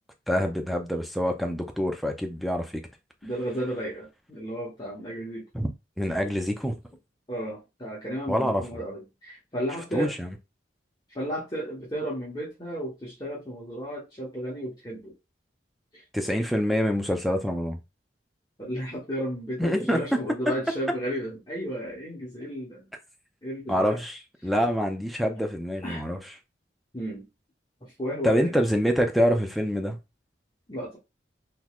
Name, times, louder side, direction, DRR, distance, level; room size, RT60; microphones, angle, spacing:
voice 1, 0.3-2.8 5.5-5.7 6.0-6.7 8.3-8.6 9.9-10.3 16.1-17.8 19.6-20.0 23.7-26.2 28.2-30.0, equal, ahead, 0.5 m, -26 dB
voice 2, 3.2-5.4 7.3-10.1 11.1-15.1 15.9-16.0 18.6-22.9 23.4-24.0 25.8-26.0 26.9-27.2 28.0-28.5 30.7-31.0, right 1 dB, 25° left, 1.1 m, -33 dB
3.9 x 3.0 x 2.4 m
head